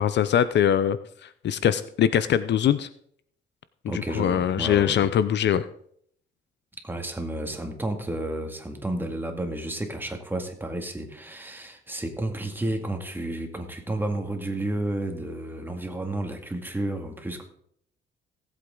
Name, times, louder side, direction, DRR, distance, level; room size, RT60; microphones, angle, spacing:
voice 1, 0.0-2.9 3.9-5.6, left 9 dB, 60° left, 14 dB, 0.6 m, -23 dB
voice 2, 3.9-5.0 6.8-17.4, right 1 dB, 10° right, 4 dB, 2.2 m, -31 dB
18.0 x 8.2 x 3.9 m, 0.66 s
cardioid pair, 90°, 20 cm